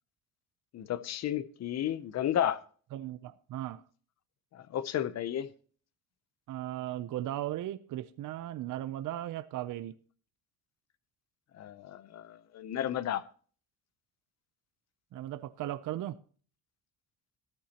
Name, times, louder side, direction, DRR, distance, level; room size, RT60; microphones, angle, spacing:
voice 1, 0.7-2.6 4.5-5.5 11.5-13.2, left 10 dB, 50° left, 0.6 m, -33 dB
voice 2, 2.9-3.8 6.5-9.9 15.1-16.2, right 13 dB, 65° right, 0.6 m, -37 dB
14.0 x 11.5 x 2.9 m
cardioid pair, 170°, 34 cm